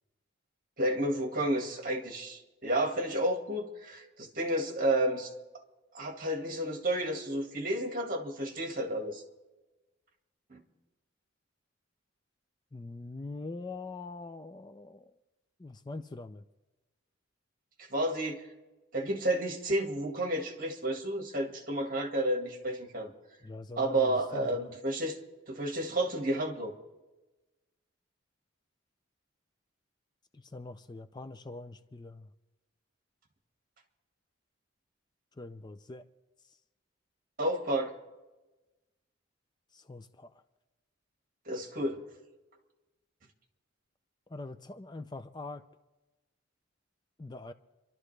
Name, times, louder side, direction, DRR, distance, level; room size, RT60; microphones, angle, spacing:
voice 1, 0.8-5.3 5.9-9.2 10.5-10.6 17.9-18.4 18.9-23.1 23.8-25.2 25.5-26.7 37.4-37.9 41.5-42.0, right 1 dB, 45° right, 3 dB, 1.8 m, -31 dB
voice 2, 12.7-15.1 15.6-16.4 23.4-24.7 30.5-32.2 35.4-36.0 39.7-40.3 44.3-45.6 47.2-47.5, left 3 dB, 20° left, 9 dB, 0.4 m, -43 dB
27.0 x 12.0 x 3.3 m, 1.1 s
head